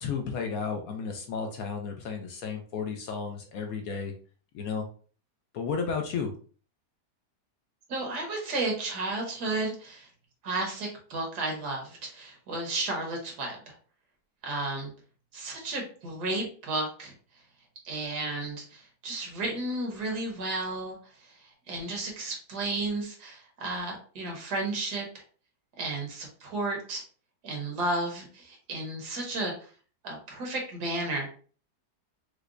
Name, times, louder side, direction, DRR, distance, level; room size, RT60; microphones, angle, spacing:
voice 1, 0.0-4.1 4.5-4.9 5.5-6.3, left 5 dB, 70° left, 3 dB, 0.9 m, -33 dB
voice 2, 7.9-10.1 10.4-13.7 14.4-14.9 15.3-17.1 17.8-25.1 25.7-27.0 27.4-29.7 30.0-31.3, right 2 dB, 75° right, 0 dB, 1.6 m, -33 dB
4.9 x 2.1 x 2.4 m, 0.41 s
omnidirectional pair, 1.8 m